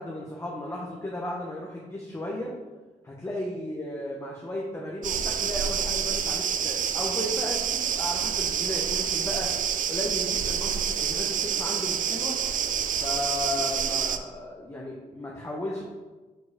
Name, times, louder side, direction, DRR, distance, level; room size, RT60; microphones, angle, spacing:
voice 1, 0.0-2.5 3.0-9.5 9.9-12.4 12.9-15.8, left 1 dB, 15° left, -3 dB, 1.0 m, -35 dB
sound 1, 5.0-14.2, right 8 dB, 60° right, 0.5 m, -28 dB
4.9 x 4.7 x 5.0 m, 1.3 s
cardioid pair, 100°, 15 cm